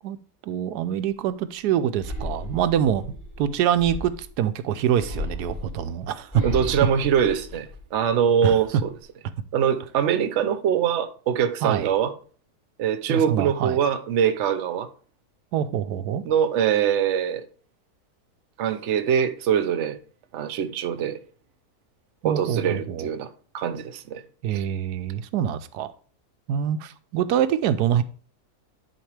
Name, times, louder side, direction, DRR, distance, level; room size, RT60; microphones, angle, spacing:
voice 1, 0.4-6.4 8.4-8.6 11.6-11.9 13.1-13.8 15.5-16.2 22.2-23.1 24.4-25.9 26.5-28.0, right 9 dB, 90° right, 1.1 m, -25 dB
sound 1, 2.0-4.4 5.0-8.1 8.5-9.0, left 1 dB, 30° left, 2.6 m, -35 dB
voice 2, 6.4-8.9 9.5-12.1 12.8-14.9 16.3-17.4 18.6-20.0 20.3-21.2 22.2-24.2 24.5-24.6, right 8 dB, 55° right, 0.9 m, -23 dB
10.5 x 4.3 x 3.3 m
omnidirectional pair, 1.7 m